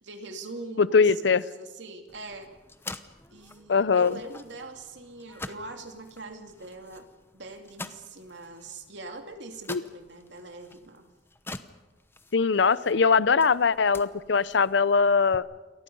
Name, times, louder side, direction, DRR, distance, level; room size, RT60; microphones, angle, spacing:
voice 1, 0.0-2.5 3.3-7.1 7.3-11.1, right 2 dB, 75° right, 4 dB, 2.7 m, -42 dB
voice 2, 0.8-1.4 3.7-4.2 9.7-9.8 12.3-15.4, left 5 dB, 70° left, 17 dB, 0.7 m, -21 dB
sound 1, 2.1-15.4, left 2 dB, 15° left, 0.9 m, -46 dB
29.0 x 24.0 x 5.5 m, 1.2 s
head